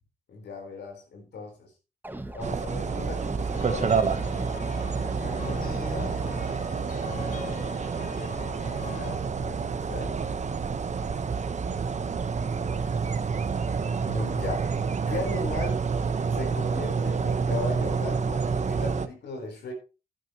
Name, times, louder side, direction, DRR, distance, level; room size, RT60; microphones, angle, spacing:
voice 1, 0.3-1.7 2.3-4.2 5.2-6.3 8.1-10.2 14.0-14.7 15.1-15.9 16.3-19.7, left 3 dB, 70° left, 2 dB, 4.0 m, -37 dB
sound 1, 2.0-6.4, right 2 dB, 10° right, 1.3 m, -39 dB
sound 2, 2.4-19.1, right 5 dB, 40° right, 1.1 m, -28 dB
sound 3, 3.5-9.1, left 4 dB, 45° left, 2.2 m, -40 dB
11.5 x 10.5 x 3.0 m, 0.31 s
cardioid pair, 80°, 19 cm